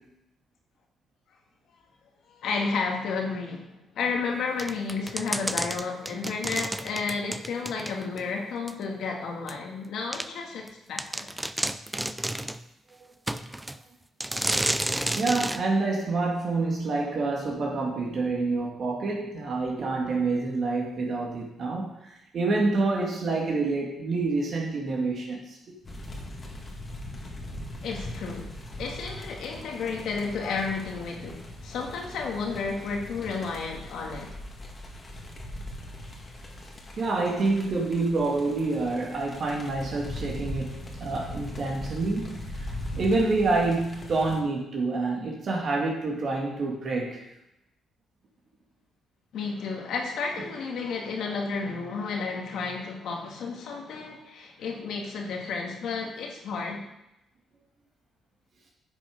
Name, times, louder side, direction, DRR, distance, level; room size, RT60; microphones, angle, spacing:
voice 1, 2.3-11.3 27.8-34.3 49.3-56.8, left 4 dB, 75° left, 1 dB, 1.9 m, -32 dB
sound 1, 4.6-8.2 8.7-8.8 9.5-9.6 10.1-10.3 10.7-10.8 11.0-12.6 13.3-13.8 14.2-15.6, right 1 dB, 10° right, 0.4 m, -31 dB
voice 2, 15.2-25.6 37.0-47.2, right 3 dB, 55° right, -2 dB, 2.2 m, -27 dB
sound 2, 25.8-44.4, left 1 dB, 30° left, 2.0 m, -40 dB
10.0 x 6.0 x 5.3 m, 0.86 s
cardioid pair, 90°, 0 cm